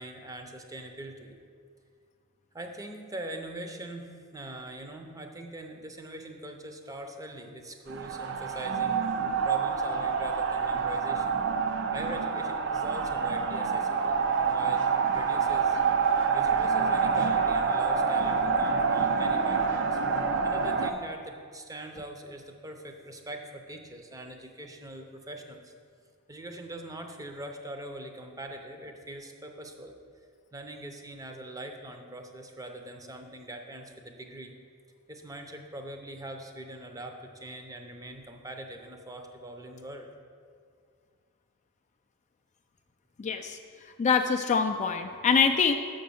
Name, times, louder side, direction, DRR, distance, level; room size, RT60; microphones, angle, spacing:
voice 1, 0.0-1.4 2.5-11.4 11.9-14.2 14.5-15.8 16.3-20.0 20.4-25.7 26.3-29.9 30.5-34.5 35.1-40.1, right 1 dB, 15° right, 4 dB, 0.6 m, -42 dB
sound 1, 7.9-20.9, right 5 dB, 55° right, 0.5 m, -27 dB
voice 2, 43.2-43.6 44.0-45.7, left 6 dB, 35° left, 6 dB, 0.3 m, -24 dB
6.4 x 5.2 x 6.9 m, 2.2 s
head